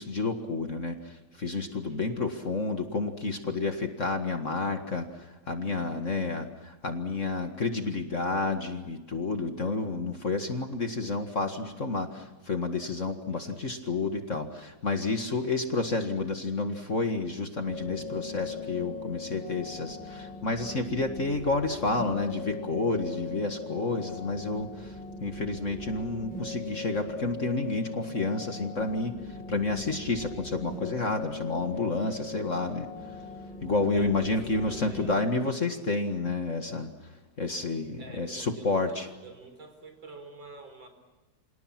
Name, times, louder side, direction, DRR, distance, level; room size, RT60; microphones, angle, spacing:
voice 1, 0.0-33.2 33.6-37.1 37.4-39.1, left 3 dB, 40° left, 5 dB, 2.0 m, -30 dB
voice 2, 1.9-2.3 13.3-13.8 31.7-32.3 33.9-35.2 38.0-40.9, right 3 dB, 65° right, 6 dB, 5.2 m, -49 dB
sound 1, 17.7-35.1, left 3 dB, 5° left, 3.8 m, -40 dB
29.0 x 26.5 x 6.0 m, 1.2 s
omnidirectional pair, 2.3 m